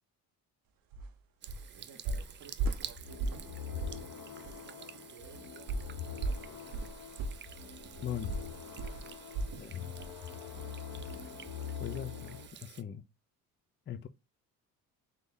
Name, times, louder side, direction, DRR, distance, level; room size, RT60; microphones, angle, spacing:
sound 1, 0.9-1.1 1.5-1.7 2.1-3.5 3.8-4.1 4.4-4.6 5.7-9.7 10.0-10.2 10.6-10.7, right 3 dB, 60° right, 0.7 m, -36 dB
Water tap faucet / Sink (filling or washing), 1.4-12.8, right 9 dB, 30° right, 0.4 m, -51 dB
voice 1, 1.7-6.9 7.9-8.1 8.9-9.9 10.3-11.0, right 5 dB, 85° right, 1.2 m, -57 dB
sound 2, 3.0-12.5, left 8 dB, 45° left, 0.9 m, -44 dB
voice 2, 8.0-8.3 9.6-9.9 11.8-13.0 13.9-14.1, left 9 dB, 30° left, 0.4 m, -40 dB
3.9 x 2.9 x 3.5 m
supercardioid pair, 75°, 39 cm